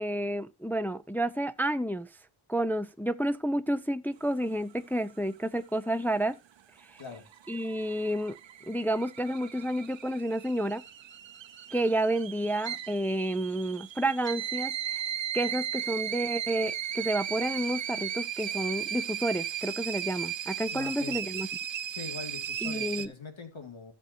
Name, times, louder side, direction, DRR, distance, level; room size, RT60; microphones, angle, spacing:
voice 1, 0.0-2.1 2.5-6.4 7.5-8.4 8.7-10.8 11.7-14.7 15.3-21.5 22.6-23.1, right 1 dB, 5° left, 0.5 m, -30 dB
sound 1, 6.8-23.1, right 9 dB, 65° right, 0.7 m, -36 dB
voice 2, 20.7-21.2 21.9-23.9, left 4 dB, 65° left, 2.3 m, -42 dB
14.5 x 7.0 x 2.7 m
wide cardioid pair, 65°, 49 cm